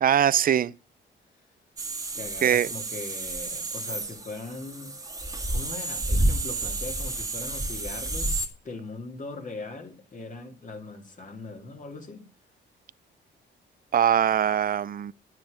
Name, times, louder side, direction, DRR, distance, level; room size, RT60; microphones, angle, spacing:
voice 1, 0.0-0.7 2.4-2.7 13.9-15.1, right 9 dB, 45° right, 0.5 m, -22 dB
sound 1, 1.8-8.5, right 2 dB, 15° right, 1.9 m, -30 dB
voice 2, 2.2-4.9 5.5-12.3, left 3 dB, 40° left, 2.8 m, -40 dB
9.9 x 9.5 x 5.1 m
cardioid pair, 90°, 20 cm